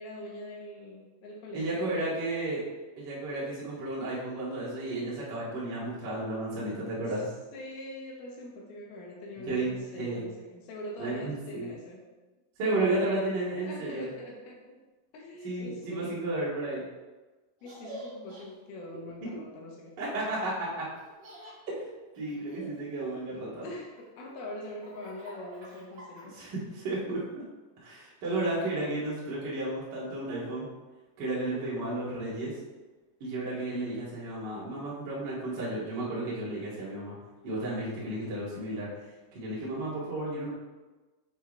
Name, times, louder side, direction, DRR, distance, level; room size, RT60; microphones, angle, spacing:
voice 1, 0.0-2.2 7.1-7.2 7.5-12.1 12.6-12.9 13.6-14.8 15.1-16.3 17.6-20.0 23.6-26.4, left 1 dB, 75° left, -2 dB, 2.3 m, -43 dB
voice 2, 1.5-2.6 3.0-7.3 9.4-9.7 10.0-10.2 11.0-11.7 12.6-14.1 15.4-16.8 20.0-20.8 21.7-21.9 22.2-23.6 26.3-27.4 27.8-30.7 31.2-32.5 33.2-37.1 37.4-38.9 39.3-40.5, right 2 dB, 75° right, -8 dB, 1.0 m, -33 dB
Laughter, 17.6-18.4 20.9-21.6 22.1-23.4 24.0-26.5, right 1 dB, 55° right, 2.2 m, -48 dB
7.1 x 5.8 x 3.2 m, 1.2 s
omnidirectional pair, 5.7 m